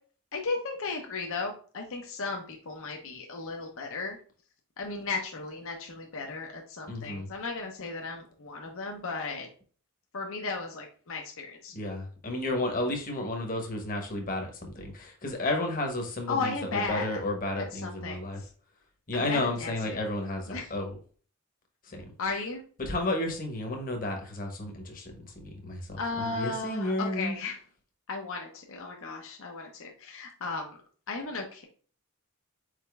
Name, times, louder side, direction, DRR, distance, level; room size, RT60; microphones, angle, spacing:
voice 1, 0.3-4.2 4.8-9.5 10.1-11.7 16.3-17.2 17.7-18.5 19.1-19.7 20.5-20.7 22.2-22.6 26.0-27.6 28.1-30.8 31.1-31.6, left 4 dB, 65° left, 0.9 m, -35 dB
voice 2, 6.9-7.3 11.7-18.4 19.1-20.9 21.9-22.1 22.8-27.3, left 1 dB, 40° left, 1.1 m, -32 dB
5.0 x 4.3 x 2.4 m
head